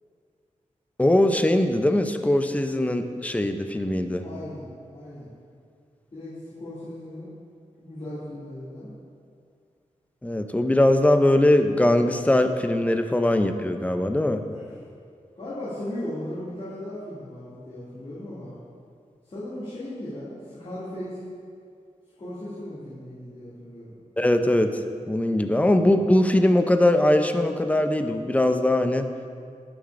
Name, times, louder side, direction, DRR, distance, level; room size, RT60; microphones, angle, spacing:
voice 1, 1.0-4.2 10.2-14.4 24.2-24.7 25.1-29.1, left 1 dB, 10° left, 7 dB, 0.5 m, -21 dB
voice 2, 4.2-5.3 6.1-7.3 7.8-8.9 14.5-14.6 15.4-18.5 19.2-21.2 22.2-23.9, left 1 dB, 50° left, -12 dB, 2.5 m, -37 dB
19.0 x 6.5 x 2.5 m, 2.3 s
wide cardioid pair, 125°, 13 cm